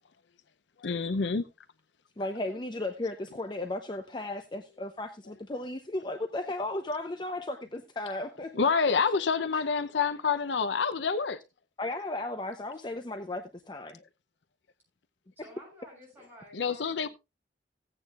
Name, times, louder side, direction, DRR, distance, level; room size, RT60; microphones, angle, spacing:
voice 1, 0.8-1.5 8.5-11.4 16.5-17.1, left 5 dB, 85° left, 0.6 m, -27 dB
voice 2, 2.2-8.5 11.8-14.0, left 2 dB, 25° left, 0.7 m, -35 dB
voice 3, 15.4-17.1, equal, 10° right, 7.9 m, -52 dB
16.0 x 8.8 x 2.4 m
head